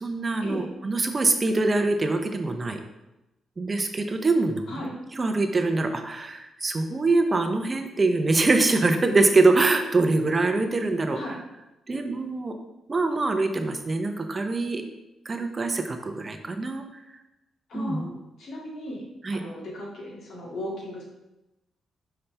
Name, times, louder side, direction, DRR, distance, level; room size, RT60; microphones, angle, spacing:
voice 1, 0.0-2.8 3.6-4.6 5.2-11.4 11.9-12.6 12.9-14.8 15.3-16.8 17.7-18.1 19.2-19.4, right 3 dB, 25° right, 6 dB, 0.6 m, -24 dB
voice 2, 17.7-18.0 18.4-19.0 19.3-21.0, left 1 dB, 70° left, -3 dB, 2.1 m, -36 dB
5.8 x 5.5 x 3.3 m, 0.96 s
cardioid pair, 115°, 0 cm